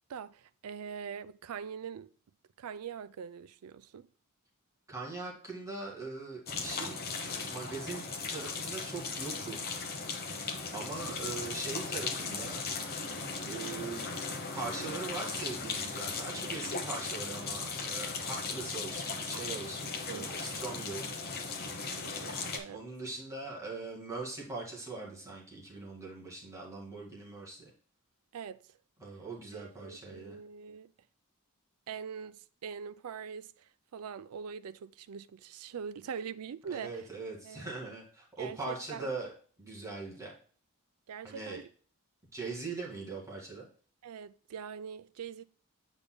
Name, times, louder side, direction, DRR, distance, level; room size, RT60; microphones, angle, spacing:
voice 1, 0.1-2.1 2.6-4.1 11.1-11.2 20.1-20.3 21.9-22.8 28.3-28.7 29.5-30.9 31.9-37.0 37.4-37.7 38.4-39.1 41.1-41.7 44.0-45.4, right 7 dB, 85° right, 0.4 m, -43 dB
voice 2, 4.9-7.0 7.5-8.0 8.3-9.7 10.7-12.6 13.4-14.1 14.5-21.1 22.7-27.7 29.0-30.4 36.7-39.3 39.6-40.3 41.2-41.6 42.3-43.7, right 3 dB, 15° right, 2.1 m, -41 dB
sound 1, 6.5-22.6, left 4 dB, 45° left, 1.0 m, -37 dB
8.2 x 5.2 x 2.2 m
head